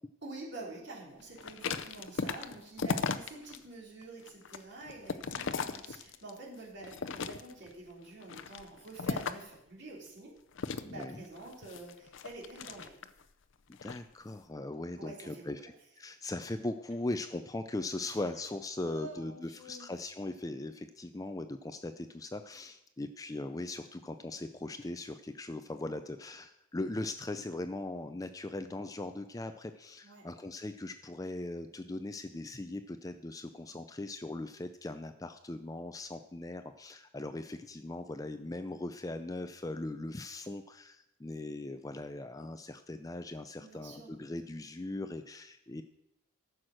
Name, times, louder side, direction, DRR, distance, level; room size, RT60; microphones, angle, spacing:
voice 1, 0.2-10.3 10.8-12.9 15.0-15.5 18.0-18.2 18.8-19.9 30.0-30.2 43.6-44.1, right 2 dB, 55° right, -3 dB, 3.3 m, -47 dB
sound 1, 1.4-3.6 4.0-6.4 6.8-7.7 8.2-9.6 10.6-13.2 13.7-14.0, left 5 dB, 60° left, 0.6 m, -37 dB
voice 2, 10.8-11.3 13.8-45.8, left 2 dB, 15° left, 9 dB, 0.4 m, -39 dB
14.0 x 6.2 x 6.4 m, 0.83 s
head